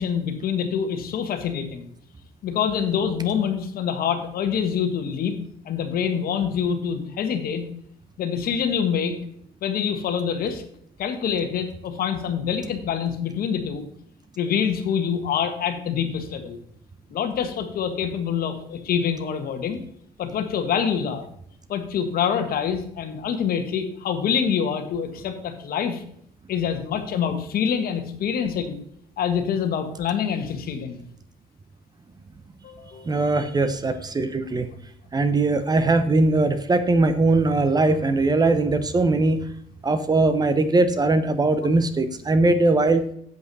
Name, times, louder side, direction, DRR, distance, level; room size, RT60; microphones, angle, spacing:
voice 1, 0.0-1.9 2.4-5.3 5.6-7.6 8.2-9.1 9.6-10.6 11.0-13.9 14.4-16.6 17.1-19.8 20.2-21.3 21.7-26.0 26.5-28.8 29.2-31.0 32.6-33.2, left 7 dB, 60° left, 7 dB, 1.4 m, -26 dB
voice 2, 33.0-34.7 35.1-39.5 39.8-43.0, right 2 dB, 25° right, 10 dB, 0.8 m, -20 dB
8.0 x 8.0 x 4.1 m, 0.68 s
cardioid pair, 110°, 17 cm